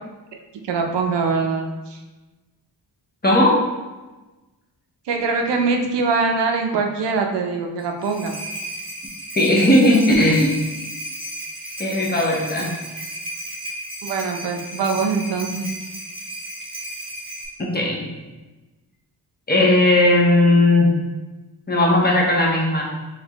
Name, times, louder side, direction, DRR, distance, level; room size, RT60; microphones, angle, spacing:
voice 1, 0.3-2.0 5.1-8.4 14.0-15.7, right 4 dB, 75° right, 3 dB, 0.6 m, -23 dB
voice 2, 3.2-3.6 9.4-10.5 11.8-12.7 17.6-18.0 19.5-20.9 21.7-22.8, left 1 dB, 25° left, -2 dB, 0.7 m, -16 dB
sound 1, 7.8-17.5, right 1 dB, 15° right, 0.9 m, -34 dB
4.1 x 3.1 x 2.9 m, 1.2 s
wide cardioid pair, 130°, 43 cm